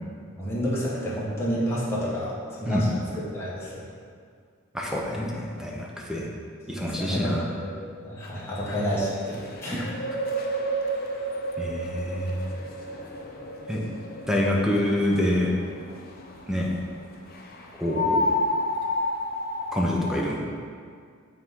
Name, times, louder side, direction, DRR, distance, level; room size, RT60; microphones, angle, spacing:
voice 1, 0.4-2.3 2.6-2.9 3.3-3.7 6.7-7.3 7.6-7.7 8.0-9.9, equal, 15° left, -8 dB, 1.3 m, -29 dB
voice 2, 4.7-6.3 6.7-7.5 9.7-9.9 11.6-12.4 13.7-13.8 14.3-15.5 16.5-16.7 17.8-18.2 19.7-20.4, left 1 dB, 5° right, -3 dB, 0.7 m, -26 dB
sound 1, 8.2-16.6 17.3-20.2, equal, 45° left, 0.6 m, -31 dB
8.7 x 3.7 x 3.7 m, 2.1 s
head